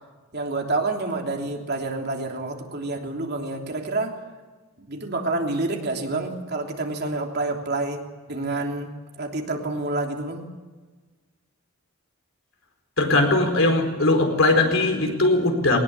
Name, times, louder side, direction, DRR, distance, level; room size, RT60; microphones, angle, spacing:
voice 1, 0.3-4.2 4.8-8.0 8.3-10.5, right 2 dB, 50° right, 2 dB, 3.2 m, -28 dB
voice 2, 13.0-15.8, left 2 dB, 65° left, 4 dB, 4.5 m, -20 dB
22.0 x 19.5 x 8.4 m, 1.3 s
head